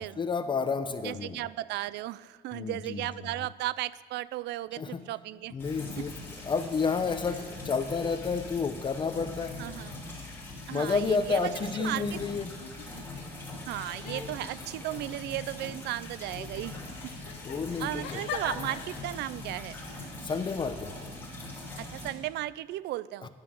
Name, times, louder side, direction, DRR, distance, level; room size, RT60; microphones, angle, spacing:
voice 1, 0.0-1.4 2.5-3.3 4.7-5.1 5.5-6.1 6.4-9.6 10.7-12.5 17.4-18.2 20.2-20.9 23.2-23.3, left 5 dB, 25° left, 9 dB, 0.7 m, -30 dB
voice 2, 1.0-5.6 6.0-6.1 9.6-9.9 10.7-11.5 11.8-12.2 13.7-16.8 17.8-19.8 21.8-23.3, right 15 dB, 70° right, 19 dB, 0.4 m, -35 dB
sound 1, 5.6-22.1, left 2 dB, 10° left, 3.2 m, -42 dB
sound 2, 11.2-11.5 11.8-13.2 13.7-14.9 15.3-19.3, left 7 dB, 90° left, 1.5 m, -43 dB
10.5 x 10.5 x 6.2 m, 1.5 s
cardioid pair, 140°, 18 cm